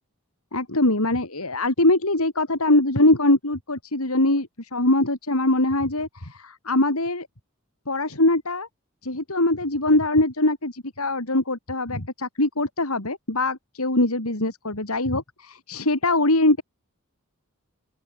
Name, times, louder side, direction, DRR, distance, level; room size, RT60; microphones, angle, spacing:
voice 1, 0.5-7.3 7.9-8.7 9.0-16.6, left 2 dB, 85° left, 4.3 m, -22 dB
open air
head